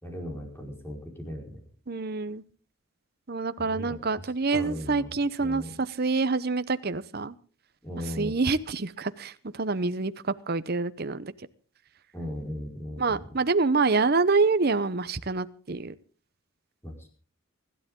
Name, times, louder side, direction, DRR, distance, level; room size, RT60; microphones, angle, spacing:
voice 1, 0.0-1.6 3.6-4.0 4.5-5.1 5.4-5.7 7.8-8.3 12.1-13.2 16.8-17.1, equal, 10° left, 2 dB, 4.7 m, -37 dB
voice 2, 1.9-2.4 3.3-7.3 8.2-11.3 13.0-15.9, right 3 dB, 45° right, 13 dB, 0.8 m, -26 dB
25.0 x 12.5 x 3.7 m, 0.40 s
head